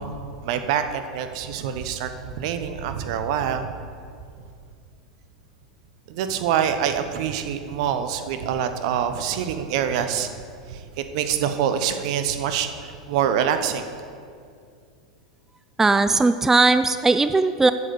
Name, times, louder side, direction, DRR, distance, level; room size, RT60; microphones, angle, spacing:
voice 1, 0.0-2.1 2.4-3.7 6.1-10.3 10.7-13.9, right 8 dB, 60° right, 8 dB, 0.9 m, -25 dB
voice 2, 15.8-17.7, right 3 dB, 10° right, 11 dB, 0.3 m, -18 dB
8.2 x 7.5 x 6.9 m, 2.3 s
hypercardioid pair, 95°, 4 cm